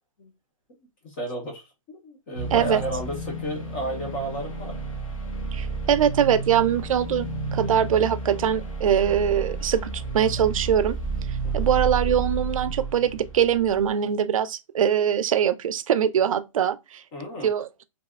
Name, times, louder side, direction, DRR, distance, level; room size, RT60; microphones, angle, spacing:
voice 1, 1.0-4.8 11.4-11.7 17.1-17.5, right 1 dB, 20° left, 0.4 m, -33 dB
sound 1, 2.3-13.9, right 3 dB, 85° left, 0.9 m, -31 dB
voice 2, 2.5-2.8 5.5-11.0 11.5-17.0 17.4-17.7, right 9 dB, 85° right, 0.4 m, -22 dB
2.7 x 2.0 x 2.3 m
hypercardioid pair, 165°, 17 cm